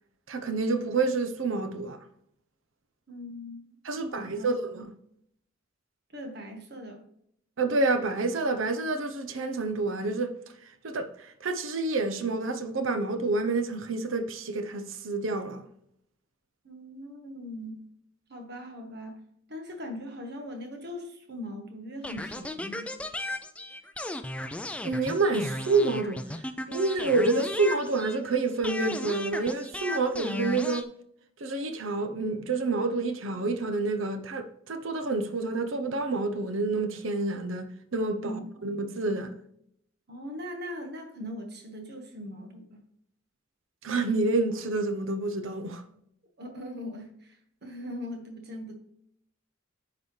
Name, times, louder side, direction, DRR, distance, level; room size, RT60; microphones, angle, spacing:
voice 1, 0.3-2.0 3.8-4.9 7.6-10.4 10.6-15.6 24.8-26.2 26.7-30.9 31.4-38.3 38.6-39.3 43.8-45.8, right 3 dB, 85° right, 0.8 m, -28 dB
voice 2, 3.1-3.6 3.9-4.5 6.1-7.1 16.6-17.8 18.3-19.2 19.5-22.9 38.2-38.7 39.1-39.3 40.1-42.8 46.4-48.7, left 1 dB, 55° right, 1.3 m, -40 dB
sound 1, 22.0-28.3 28.6-30.8, left 1 dB, 5° left, 0.3 m, -35 dB
9.6 x 4.1 x 3.2 m
head